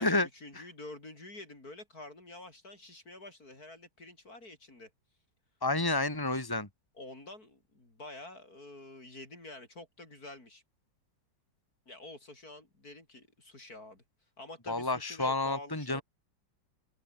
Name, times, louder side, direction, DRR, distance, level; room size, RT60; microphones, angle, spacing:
voice 1, 0.0-4.9 7.0-10.6 11.9-14.0 14.4-16.0, left 2 dB, 50° left, 6.5 m, -48 dB
voice 2, 5.6-6.7 14.7-16.0, left 2 dB, 10° left, 3.7 m, -30 dB
open air
omnidirectional pair, 2.0 m